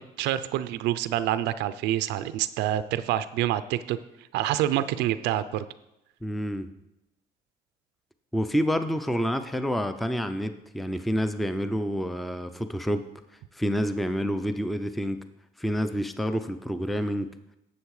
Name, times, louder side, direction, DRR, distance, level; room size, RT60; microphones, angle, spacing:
voice 1, 0.0-4.0 4.3-5.6, right 12 dB, 90° right, 13 dB, 0.5 m, -27 dB
voice 2, 6.2-6.7 8.3-13.1 13.5-15.2 15.6-17.3, equal, ahead, 10 dB, 0.5 m, -28 dB
10.5 x 7.2 x 4.8 m, 0.88 s
cardioid pair, 110°, 17 cm